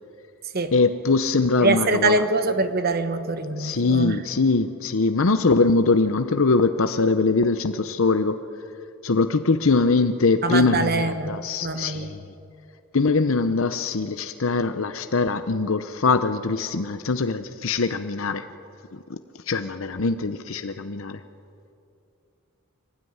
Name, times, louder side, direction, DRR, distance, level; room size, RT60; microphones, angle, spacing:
voice 1, 0.7-2.2 3.6-8.4 9.0-12.2 12.9-18.4 18.9-19.2 19.5-21.2, left 3 dB, 65° left, 9 dB, 0.8 m, -22 dB
voice 2, 1.6-4.2 10.4-12.1, right 3 dB, 45° right, 9 dB, 1.2 m, -24 dB
23.0 x 18.5 x 9.5 m, 2.6 s
head